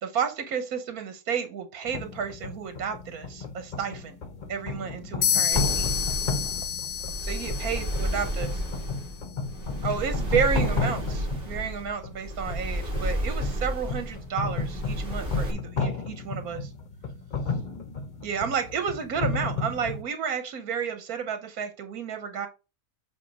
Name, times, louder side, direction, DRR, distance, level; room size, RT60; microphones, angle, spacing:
voice 1, 0.0-4.2 4.5-5.9 7.2-8.6 9.8-16.7 18.2-22.5, right 6 dB, 85° right, 1.5 m, -31 dB
sound 1, 1.9-20.0, left 4 dB, 40° left, 0.8 m, -33 dB
sound 2, 5.2-9.0, left 9 dB, 85° left, 0.4 m, -29 dB
sound 3, 5.5-15.5, right 1 dB, 40° right, 2.1 m, -32 dB
7.8 x 2.7 x 5.9 m
omnidirectional pair, 1.5 m